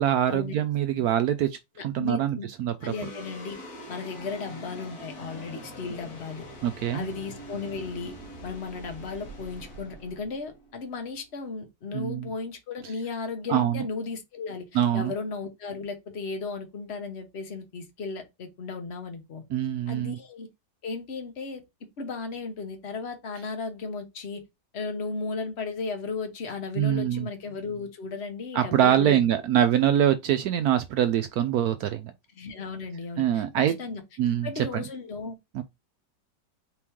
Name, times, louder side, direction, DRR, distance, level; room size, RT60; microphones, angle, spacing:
voice 1, 0.0-1.6 1.8-3.1 6.6-7.1 11.9-12.3 13.5-13.8 14.7-15.1 19.5-20.2 26.8-27.3 28.5-32.1 33.2-33.8 34.2-34.8 35.5-35.6, right 10 dB, 70° right, 0.9 m, -24 dB
voice 2, 1.8-2.4 2.8-3.6 3.9-6.5 6.9-8.1 8.4-19.4 19.9-20.5 20.8-21.6 22.0-24.4 24.7-29.2 32.4-33.4 33.8-34.0 34.4-35.4, left 4 dB, 40° left, 1.2 m, -35 dB
sound 1, 2.8-11.3, equal, 60° left, 1.7 m, -44 dB
4.4 x 3.0 x 3.5 m
omnidirectional pair, 1.9 m